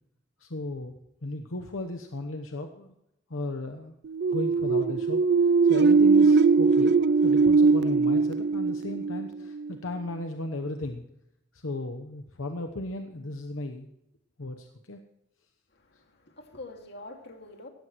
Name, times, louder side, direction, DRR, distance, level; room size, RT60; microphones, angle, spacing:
voice 1, 0.4-2.9 3.3-3.9 4.3-7.0 7.2-11.0 11.5-13.9 14.4-15.0, left 2 dB, 80° left, 5 dB, 1.0 m, -35 dB
sound 1, 4.1-9.7, right 4 dB, 55° right, 0.4 m, -21 dB
voice 2, 15.7-17.7, left 2 dB, 55° left, 3 dB, 2.2 m, -45 dB
17.5 x 14.0 x 3.1 m, 0.83 s
head